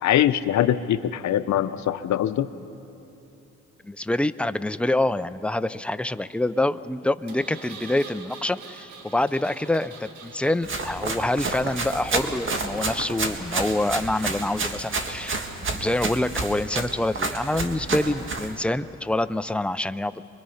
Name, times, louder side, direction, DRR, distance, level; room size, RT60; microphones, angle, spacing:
voice 1, 0.0-2.5, left 11 dB, 65° left, 12 dB, 0.8 m, -22 dB
voice 2, 3.8-15.5 15.7-20.2, left 1 dB, 5° left, 12 dB, 0.5 m, -26 dB
Engine, 7.3-14.7, right 5 dB, 75° right, 1.9 m, -46 dB
Run, 10.6-18.5, right 3 dB, 40° right, 1.9 m, -30 dB
25.0 x 22.5 x 5.6 m, 2.8 s
cardioid pair, 90°, 30 cm